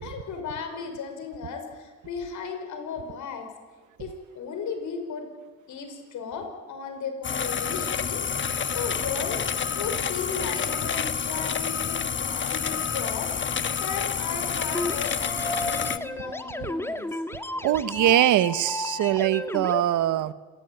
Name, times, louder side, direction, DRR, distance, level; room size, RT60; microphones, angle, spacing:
voice 1, 0.0-3.5 4.0-5.3 5.7-17.2 17.7-18.2, left 5 dB, 75° left, 6 dB, 5.8 m, -36 dB
sound 1, 7.2-16.0, left 7 dB, 40° left, 1.2 m, -28 dB
sound 2, 14.7-19.8, left 1 dB, 10° left, 1.7 m, -33 dB
voice 2, 17.6-20.3, right 12 dB, 85° right, 14 dB, 1.2 m, -22 dB
27.0 x 19.0 x 9.2 m, 1.4 s
cardioid pair, 90°, 30 cm